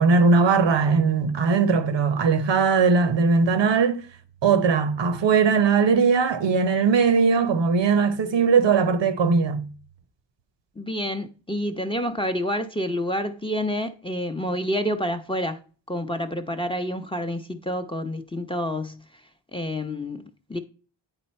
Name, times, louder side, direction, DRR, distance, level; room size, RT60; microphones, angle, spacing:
voice 1, 0.0-4.1 4.4-9.7, right 5 dB, 70° right, 1.0 m, -20 dB
voice 2, 10.8-15.6 15.9-19.0 19.5-20.2 20.5-20.6, equal, 10° left, 0.7 m, -28 dB
9.0 x 3.9 x 4.3 m
cardioid pair, 55°, 45 cm